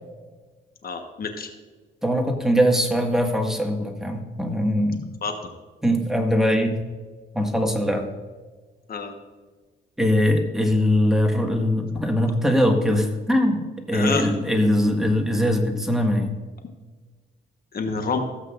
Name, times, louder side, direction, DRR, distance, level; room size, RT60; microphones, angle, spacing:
voice 1, 0.8-1.5 5.2-5.3 8.9-9.1 13.9-14.3 17.7-18.2, left 5 dB, 50° left, 5 dB, 1.2 m, -28 dB
voice 2, 2.0-5.1 5.8-6.8 7.3-8.1 10.0-16.4, equal, ahead, 2 dB, 1.7 m, -21 dB
16.0 x 8.0 x 2.5 m, 1.4 s
cardioid pair, 90°, 20 cm